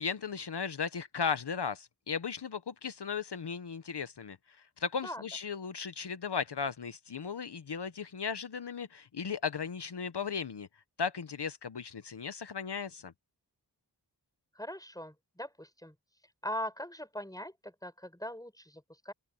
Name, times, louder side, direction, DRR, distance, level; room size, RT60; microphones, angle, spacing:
voice 1, 0.0-10.7 11.0-13.1, left 6 dB, 75° left, 0.9 m, -36 dB
voice 2, 14.6-16.0 16.4-19.1, equal, 10° left, 6.9 m, -41 dB
wide cardioid pair, 60°, 41 cm